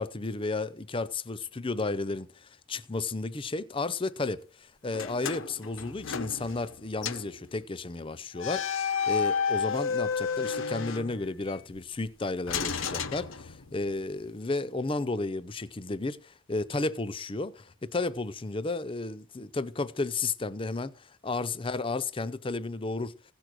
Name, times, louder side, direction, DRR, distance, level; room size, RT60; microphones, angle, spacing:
voice 1, 0.0-23.1, left 3 dB, 25° left, 0.6 m, -33 dB
sound 1, 4.9-6.8 7.0-7.3 8.4-11.6 12.5-13.9, left 6 dB, 75° left, 0.8 m, -31 dB
16.0 x 6.2 x 6.5 m
head